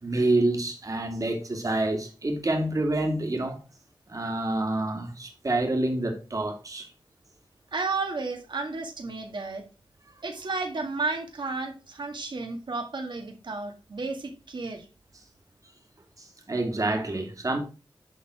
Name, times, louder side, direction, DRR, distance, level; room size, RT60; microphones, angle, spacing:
voice 1, 0.0-3.6 4.1-6.9 16.5-17.6, right 2 dB, 40° right, 2.3 m, -27 dB
voice 2, 7.7-9.6 10.2-14.8, right 3 dB, 65° right, 1.9 m, -32 dB
11.0 x 4.2 x 4.8 m
wide cardioid pair, 95°, 9 cm